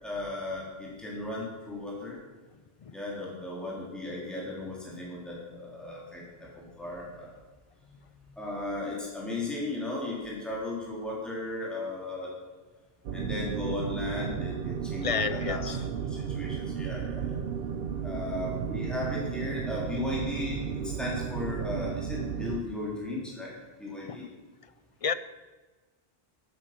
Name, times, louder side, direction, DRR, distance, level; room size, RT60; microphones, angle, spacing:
voice 1, 0.0-2.2 2.9-7.3 8.4-12.3 13.1-17.4 18.0-24.2, left 2 dB, ahead, -5 dB, 3.3 m, -36 dB
sound 1, 13.0-22.6, right 7 dB, 70° right, 0.9 m, -34 dB
voice 2, 15.0-15.7 25.0-25.1, left 6 dB, 50° left, 14 dB, 0.4 m, -29 dB
12.0 x 9.9 x 5.9 m, 1.3 s
omnidirectional pair, 1.0 m